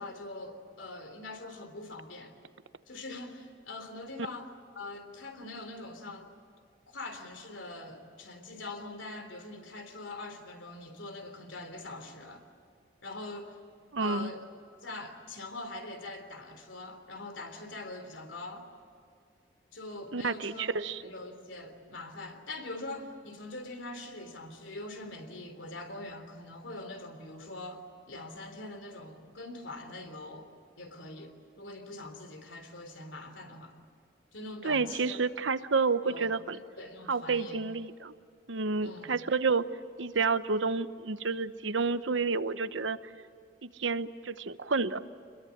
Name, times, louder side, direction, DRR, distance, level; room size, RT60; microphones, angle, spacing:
voice 1, 0.0-2.4 2.9-6.3 6.9-12.4 13.0-13.6 14.0-14.4 14.8-18.7 19.7-20.7 21.0-30.5 30.8-33.7 34.3-35.2 36.0-36.3 36.8-37.6 38.8-39.1, left 2 dB, 90° left, 6 dB, 3.5 m, -43 dB
voice 2, 13.9-14.3 20.1-21.0 34.6-36.6 37.1-38.1 38.5-39.7 40.0-43.0 43.6-45.0, right 4 dB, 90° right, 12 dB, 0.9 m, -30 dB
26.5 x 22.0 x 8.7 m, 2.3 s
head